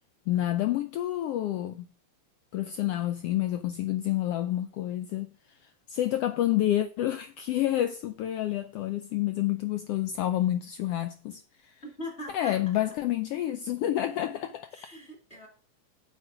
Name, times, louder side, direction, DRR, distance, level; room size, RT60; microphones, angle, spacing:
voice 1, 0.3-1.9 2.5-11.8 12.3-14.7, left 13 dB, 85° left, 1.3 m, -29 dB
voice 2, 12.0-12.8 14.7-15.5, left 1 dB, 20° left, 2.3 m, -41 dB
8.7 x 7.8 x 4.7 m
omnidirectional pair, 3.3 m